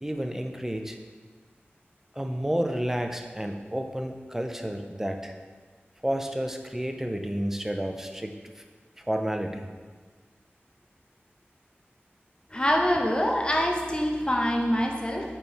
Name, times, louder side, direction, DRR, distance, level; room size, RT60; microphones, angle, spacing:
voice 1, 0.0-1.0 2.1-5.4 6.0-8.6 9.0-9.7, equal, 10° right, 4 dB, 0.5 m, -31 dB
voice 2, 12.5-15.4, equal, 20° left, 1 dB, 0.8 m, -25 dB
4.4 x 4.3 x 5.2 m, 1.5 s
wide cardioid pair, 55°, 4 cm